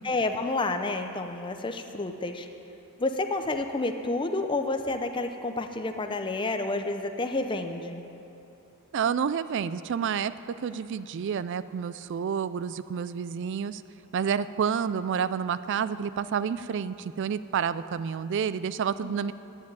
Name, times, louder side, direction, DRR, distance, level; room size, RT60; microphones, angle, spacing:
voice 1, 0.0-2.5 3.0-8.0, left 2 dB, 20° left, 6 dB, 0.5 m, -29 dB
voice 2, 8.9-10.3 10.6-13.8 14.1-19.3, right 7 dB, 55° right, 15 dB, 0.3 m, -29 dB
9.4 x 7.1 x 9.1 m, 2.9 s
head